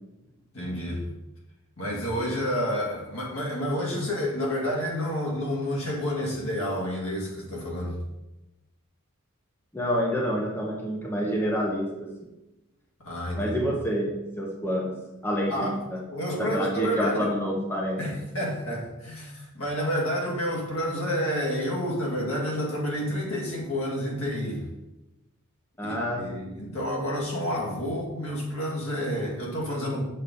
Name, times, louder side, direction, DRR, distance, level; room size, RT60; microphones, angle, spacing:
voice 1, 0.5-1.0 1.8-8.0 13.0-13.7 15.5-15.8 16.1-17.3 18.0-24.6 25.8-30.0, equal, 70° left, -3 dB, 2.0 m, -29 dB
voice 2, 9.7-12.1 13.4-16.0 16.4-18.3 25.8-26.5, equal, 10° left, -2 dB, 0.8 m, -28 dB
6.6 x 5.5 x 3.8 m, 0.98 s
head